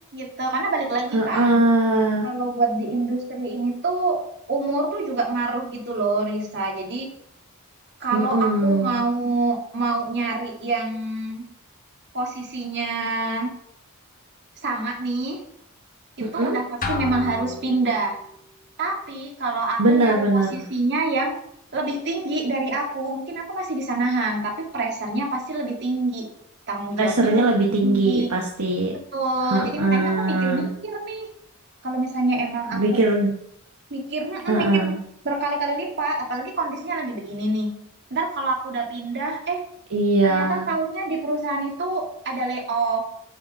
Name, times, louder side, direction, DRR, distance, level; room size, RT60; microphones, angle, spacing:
voice 1, 0.1-1.7 2.2-4.2 4.5-7.1 8.0-11.5 12.1-13.5 14.6-15.4 16.2-18.2 18.8-21.3 21.7-26.3 26.7-27.6 27.8-28.3 29.1-31.3 31.8-33.0 33.9-34.9 35.2-37.7 38.1-39.6 40.2-43.0, right 2 dB, 50° right, 0 dB, 2.2 m, -26 dB
voice 2, 1.1-2.3 8.1-9.0 16.2-16.6 19.8-20.6 27.0-28.9 29.5-30.7 32.7-33.3 34.5-35.0 39.9-40.7, right 2 dB, 70° right, -1 dB, 1.1 m, -21 dB
sound 1, 16.8-18.3, left 3 dB, 40° left, 1.2 m, -31 dB
9.4 x 5.0 x 5.4 m, 0.72 s
head